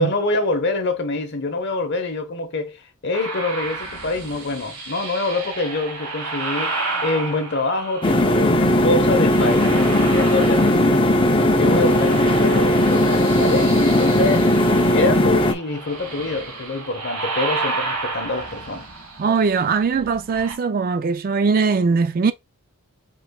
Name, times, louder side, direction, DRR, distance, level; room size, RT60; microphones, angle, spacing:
voice 1, 0.0-18.9, left 2 dB, 50° left, 1.0 m, -25 dB
sound 1, 3.1-8.4 9.0-11.2 11.5-20.6, right 3 dB, 90° right, 1.8 m, -32 dB
sound 2, 8.0-15.5, left 1 dB, 25° left, 0.6 m, -17 dB
voice 2, 19.2-22.3, right 5 dB, 40° right, 0.3 m, -20 dB
5.1 x 3.9 x 2.3 m
head